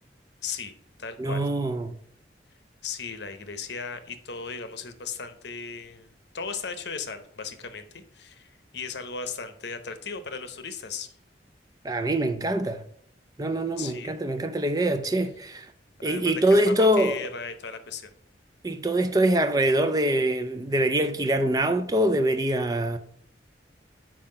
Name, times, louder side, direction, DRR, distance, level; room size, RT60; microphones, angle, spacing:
voice 1, 0.4-0.7 1.0-1.4 2.8-11.1 13.8-14.2 16.0-18.1, left 5 dB, 75° left, 0.8 m, -36 dB
voice 2, 1.2-1.9 11.8-12.8 13.4-15.7 16.0-17.2 18.6-23.0, right 1 dB, 20° right, 0.4 m, -24 dB
5.7 x 4.9 x 5.3 m
head